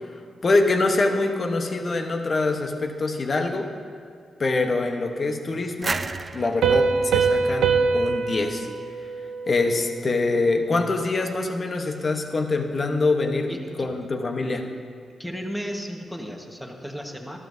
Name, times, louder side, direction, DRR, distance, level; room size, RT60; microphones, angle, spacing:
voice 1, 0.4-3.7 4.4-6.0 6.3-8.7 9.5-13.5 13.8-14.7, left 3 dB, 50° left, 5 dB, 1.0 m, -24 dB
sound 1, 5.8-8.5, right 3 dB, 40° right, 0.4 m, -33 dB
Piano, 6.6-10.0, right 5 dB, 85° right, 0.6 m, -23 dB
voice 2, 13.5-13.9 15.2-17.4, equal, 5° left, 2 dB, 1.4 m, -34 dB
12.5 x 12.0 x 2.7 m, 2.3 s
cardioid pair, 60°, 0 cm